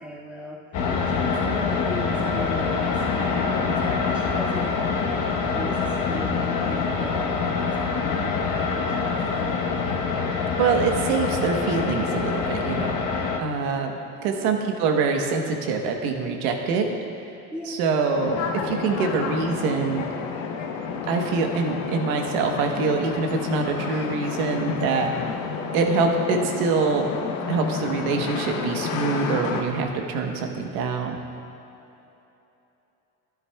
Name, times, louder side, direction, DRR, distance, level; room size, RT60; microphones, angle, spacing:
voice 1, 0.0-4.8 5.5-10.0 14.0-14.5 17.5-17.9, left 1 dB, 5° right, -6 dB, 1.8 m, -38 dB
sound 1, 0.7-13.4, left 5 dB, 45° left, 1.1 m, -25 dB
voice 2, 10.6-12.9 13.4-16.9 17.7-20.1 21.1-25.1 25.7-27.1 27.5-31.2, right 4 dB, 85° right, 3 dB, 1.2 m, -25 dB
sound 2, 18.1-29.6, left 5 dB, 90° left, 0.9 m, -31 dB
sound 3, 21.9-22.8 24.1-25.4 26.8-28.5, left 4 dB, 15° left, 0.3 m, -38 dB
12.5 x 10.5 x 2.3 m, 3.0 s
supercardioid pair, 105°, 42 cm